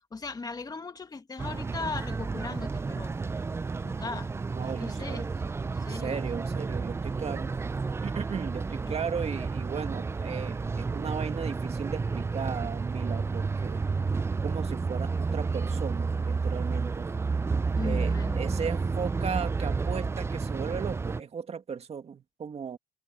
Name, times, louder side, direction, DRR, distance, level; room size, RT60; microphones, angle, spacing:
voice 1, 0.0-3.1 3.8-4.3 4.6-6.2 8.9-9.0 17.8-18.7, left 4 dB, 20° left, 1.9 m, -38 dB
sound 1, 1.4-21.2, right 4 dB, 15° right, 0.4 m, -31 dB
voice 2, 4.6-5.3 5.9-7.5 8.0-13.8 14.4-17.1 17.8-22.8, right 6 dB, 40° right, 2.2 m, -36 dB
cardioid pair, 110°, 17 cm